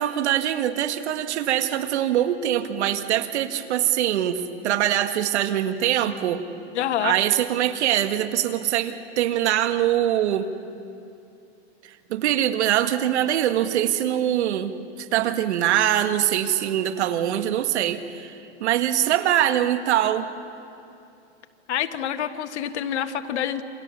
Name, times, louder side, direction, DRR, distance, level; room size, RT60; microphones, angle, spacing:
voice 1, 0.0-6.5 7.0-10.5 12.1-14.7 15.0-18.3 18.6-20.3, right 11 dB, 75° right, 10 dB, 1.8 m, -23 dB
voice 2, 6.7-7.2 21.7-23.6, left 10 dB, 80° left, 9 dB, 1.6 m, -27 dB
28.0 x 26.5 x 7.1 m, 2.6 s
hypercardioid pair, 130°, 34 cm